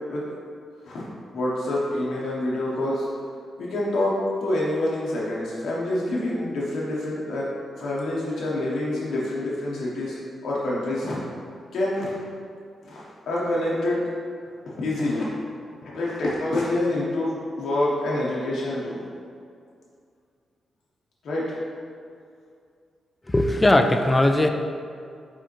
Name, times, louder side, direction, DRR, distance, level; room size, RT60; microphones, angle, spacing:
voice 1, 1.3-3.1 3.6-7.5 7.8-10.2 10.4-11.2 11.7-12.2 12.8-14.0 14.7-15.3 15.8-19.0 21.2-21.6, left 1 dB, 70° left, -6 dB, 0.8 m, -26 dB
voice 2, 23.3-24.5, left 1 dB, 15° left, 6 dB, 0.3 m, -19 dB
4.8 x 3.6 x 3.0 m, 2.3 s
cardioid pair, 95°, 0 cm